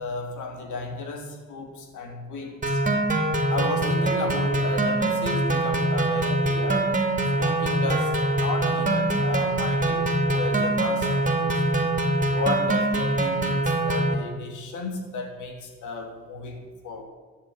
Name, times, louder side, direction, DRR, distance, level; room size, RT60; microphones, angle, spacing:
voice 1, 0.0-2.8 3.5-6.9 7.4-11.6 12.3-17.0, left 3 dB, 80° left, 4 dB, 3.1 m, -34 dB
sound 1, 2.6-14.1, right 2 dB, 25° right, 2.4 m, -24 dB
13.0 x 7.8 x 9.5 m, 1.4 s
cardioid pair, 90°, 30 cm